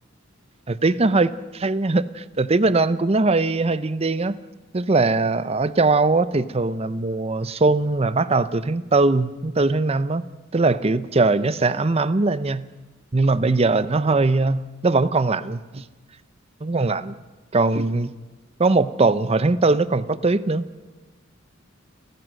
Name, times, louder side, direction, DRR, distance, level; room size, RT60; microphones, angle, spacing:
voice 1, 0.7-4.4 4.7-10.2 10.5-12.7 13.1-15.8 16.6-17.1 17.5-18.1 18.6-20.9, right 3 dB, 30° right, 0.7 m, -21 dB
29.0 x 13.5 x 6.5 m
head